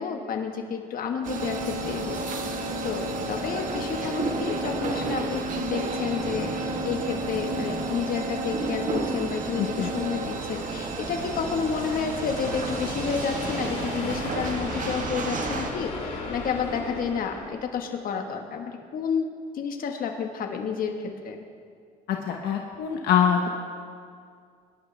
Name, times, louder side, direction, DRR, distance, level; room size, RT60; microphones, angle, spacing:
voice 1, 0.0-2.2 2.8-19.3 19.5-21.4, left 6 dB, 55° left, 3 dB, 1.6 m, -30 dB
sound 1, 1.2-15.7, right 3 dB, 50° right, 1.6 m, -31 dB
voice 2, 9.6-9.9 22.1-23.5, left 8 dB, 80° left, 2 dB, 1.2 m, -24 dB
sound 2, 9.7-17.5, left 3 dB, 40° left, 3.0 m, -37 dB
23.5 x 11.5 x 3.5 m, 2.2 s
cardioid pair, 110°, 17 cm